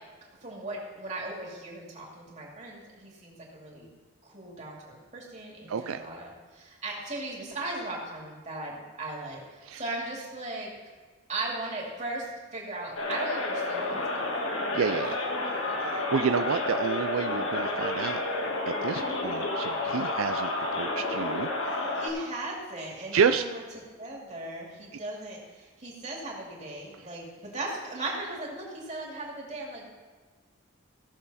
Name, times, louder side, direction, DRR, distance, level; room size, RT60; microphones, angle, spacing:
voice 1, 0.4-3.9 4.2-10.7 11.3-14.3 14.8-14.9 15.6-15.8 21.7-29.9, right 2 dB, 35° right, -2 dB, 2.5 m, -38 dB
voice 2, 5.7-6.0 9.6-9.8 14.7-15.2 15.8-18.2 18.7-22.0 23.1-23.4, right 6 dB, 80° right, 9 dB, 0.4 m, -29 dB
sound 1, 13.0-22.1, left 2 dB, 75° left, 1.7 m, -30 dB
16.5 x 6.9 x 4.2 m, 1.4 s
head